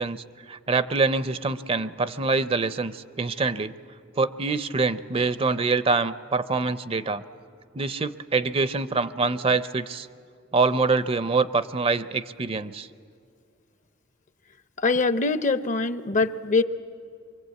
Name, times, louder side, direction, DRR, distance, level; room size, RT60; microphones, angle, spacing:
voice 1, 0.0-3.7 4.2-7.2 7.7-10.1 10.5-12.9, right 4 dB, 30° right, 13 dB, 0.5 m, -25 dB
voice 2, 14.8-16.6, left 3 dB, 40° left, 13 dB, 0.6 m, -23 dB
24.5 x 23.5 x 8.3 m, 2.3 s
head